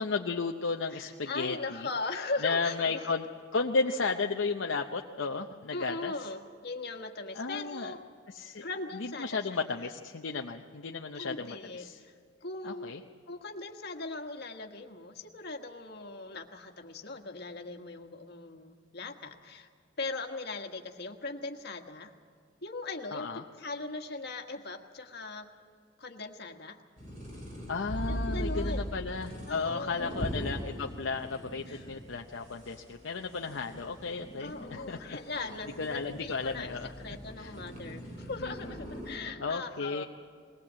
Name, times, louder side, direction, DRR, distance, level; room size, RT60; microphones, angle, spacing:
voice 1, 0.0-1.9 2.4-3.3 3.5-6.1 7.3-7.9 8.3-8.7 8.9-12.0 12.6-13.0 23.1-23.4 27.7-35.5 35.8-36.9 37.4-37.5 38.4-38.7 39.4-40.0, left 4 dB, 70° left, 3 dB, 0.7 m, -34 dB
voice 2, 0.9-3.1 5.7-8.0 8.6-9.6 11.1-12.1 12.4-12.9 13.3-19.7 20.0-22.1 22.6-23.3 23.5-25.5 26.0-26.8 28.1-28.9 29.5-30.1 31.7-31.8 34.4-40.0, left 3 dB, 55° left, 4 dB, 1.5 m, -39 dB
sound 1, 27.0-39.2, equal, 40° right, 5.5 m, -40 dB
21.0 x 19.0 x 7.5 m, 2.1 s
head